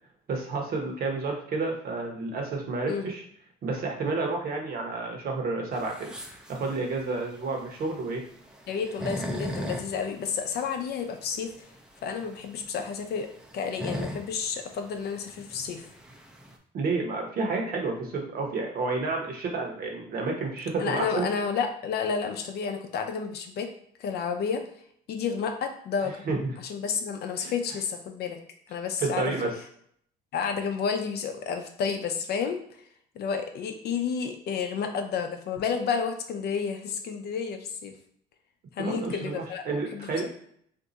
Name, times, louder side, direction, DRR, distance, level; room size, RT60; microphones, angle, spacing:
voice 1, 0.3-3.2 3.6-6.1 6.5-8.2 16.7-21.3 26.3-26.5 27.4-27.5 29.0-29.5 38.8-40.3, right 3 dB, 50° right, 2 dB, 0.9 m, -30 dB
sound 1, 5.7-16.6, equal, 5° right, 0.5 m, -39 dB
voice 2, 8.7-11.5 12.0-15.9 20.8-23.7 24.0-24.6 25.1-26.2 26.6-28.4 28.7-29.3 30.3-32.6 33.2-38.0 38.8-39.6 39.9-40.3, left 6 dB, 60° left, 5 dB, 0.5 m, -31 dB
2.6 x 2.3 x 3.9 m, 0.66 s
cardioid pair, 95°, 19 cm